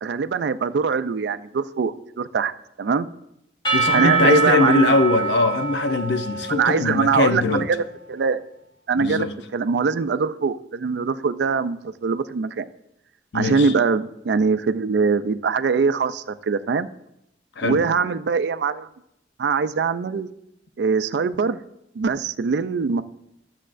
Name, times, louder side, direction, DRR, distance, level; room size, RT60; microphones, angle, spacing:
voice 1, 0.0-2.5 2.8-3.1 3.9-4.9 6.5-8.4 8.9-9.3 9.5-12.7 13.3-16.9 17.6-18.9 19.4-20.3 20.8-21.6 22.0-23.0, right 5 dB, 70° right, 0.4 m, -22 dB
Percussion / Church bell, 3.6-7.6, right 5 dB, 25° left, 1.3 m, -24 dB
voice 2, 3.7-7.7 9.0-9.3 13.3-13.7 17.6-17.8, left 3 dB, 80° left, 0.7 m, -21 dB
13.0 x 7.3 x 2.5 m
head